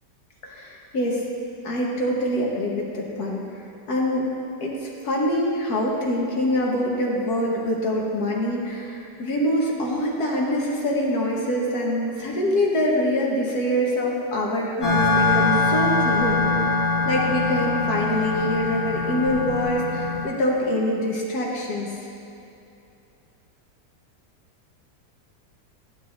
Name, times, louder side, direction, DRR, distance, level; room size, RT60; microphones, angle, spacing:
voice 1, 0.4-1.2 1.6-3.6 3.9-4.2 4.6-21.9, equal, 65° left, -2 dB, 1.8 m, -25 dB
sound 1, 14.8-20.3, left 3 dB, 30° left, 1.5 m, -23 dB
14.5 x 8.1 x 2.6 m, 2.7 s
omnidirectional pair, 1.8 m